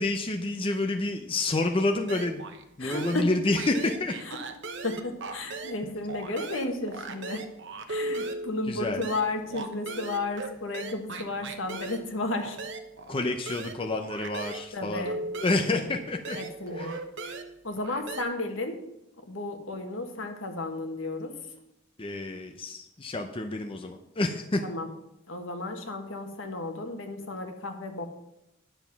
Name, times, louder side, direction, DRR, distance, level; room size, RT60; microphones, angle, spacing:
voice 1, 0.0-2.4 2.8-4.2 8.7-9.0 13.1-15.1 15.4-16.4 16.8-17.0 22.0-24.6, left 2 dB, 25° left, 4 dB, 0.7 m, -29 dB
sound 1, 2.1-2.6 2.9-5.8 6.1-14.7 15.1-18.2, right 2 dB, 60° right, 1.0 m, -38 dB
voice 2, 2.8-3.3 4.2-4.4 4.8-7.4 7.9-12.6 14.7-15.2 15.7-15.8 16.4-16.9 17.2-17.3 17.6-18.8 19.3-21.3 24.6-24.9 25.3-28.0, left 2 dB, 75° left, 5 dB, 1.6 m, -33 dB
10.0 x 7.2 x 5.8 m, 0.85 s
head